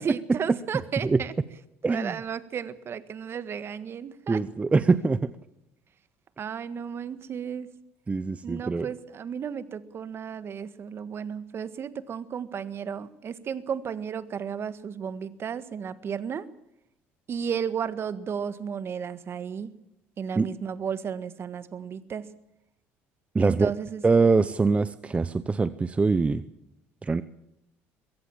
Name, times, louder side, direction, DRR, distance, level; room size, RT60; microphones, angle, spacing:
voice 1, 0.0-1.3 1.9-4.4 6.4-7.7 8.4-16.5 17.3-19.8 20.2-22.3 23.4-24.0, right 7 dB, 45° right, 13 dB, 1.6 m, -33 dB
voice 2, 1.8-2.2 4.3-5.3 8.1-8.9 20.4-20.5 23.3-23.7 24.0-26.4 27.0-27.2, right 4 dB, 20° right, 14 dB, 0.8 m, -23 dB
22.0 x 16.5 x 7.3 m, 0.85 s
supercardioid pair, 80°, 6 cm